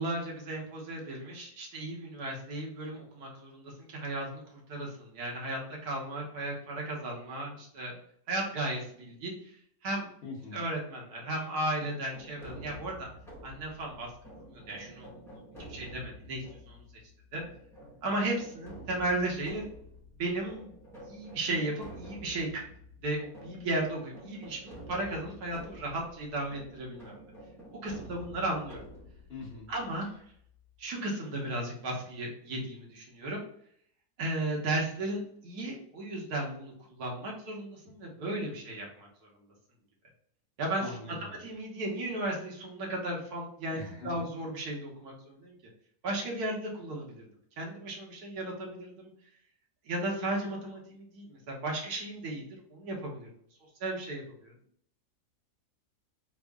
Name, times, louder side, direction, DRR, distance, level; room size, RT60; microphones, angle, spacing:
voice 1, 0.0-7.9 8.3-9.3 9.8-10.1 10.5-13.1 13.4-14.1 14.4-15.4 15.7-16.8 17.3-17.4 18.0-19.7 20.2-20.8 21.1-22.6 23.0-27.2 27.8-28.8 29.7-30.1 30.8-33.4 34.2-39.1 40.6-41.0 41.4-45.5 46.0-47.3 47.6-49.1 49.8-52.4 52.7-53.3 53.8-54.5, right 1 dB, 80° right, -2 dB, 1.4 m, -35 dB
voice 2, 10.2-10.6 29.3-29.7 40.8-41.4 43.7-44.3, left 3 dB, 45° left, -4 dB, 1.0 m, -43 dB
sound 1, 12.1-30.8, equal, 5° left, 0.4 m, -49 dB
3.5 x 2.0 x 3.4 m, 0.66 s
omnidirectional pair, 1.7 m